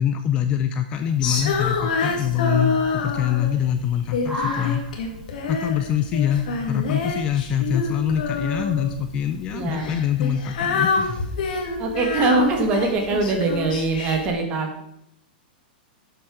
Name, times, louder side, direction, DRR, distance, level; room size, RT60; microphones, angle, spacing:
voice 1, 0.0-4.8 5.5-11.3, left 10 dB, 20° left, 9 dB, 0.4 m, -24 dB
Female singing, 1.2-3.6 4.1-5.8 6.1-8.9 9.7-14.3, left 4 dB, 55° left, 2.3 m, -26 dB
sound 1, 1.2-14.3, equal, 5° right, 2.4 m, -40 dB
voice 2, 9.5-10.0 11.8-14.8, right 3 dB, 20° right, 3 dB, 1.7 m, -22 dB
11.5 x 7.6 x 4.9 m, 0.76 s
supercardioid pair, 175°, 5 cm